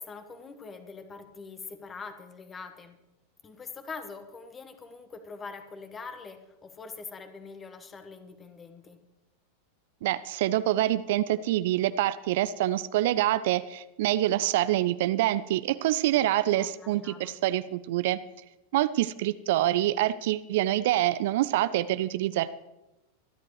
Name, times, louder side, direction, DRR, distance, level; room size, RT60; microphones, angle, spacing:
voice 1, 0.0-3.0 3.4-9.0 16.5-17.3, left 4 dB, 20° left, 8 dB, 1.5 m, -43 dB
voice 2, 10.0-18.2 18.7-22.5, right 14 dB, 55° right, 15 dB, 0.5 m, -26 dB
25.0 x 11.0 x 3.2 m, 0.98 s
figure-of-eight pair, 90°, 0 cm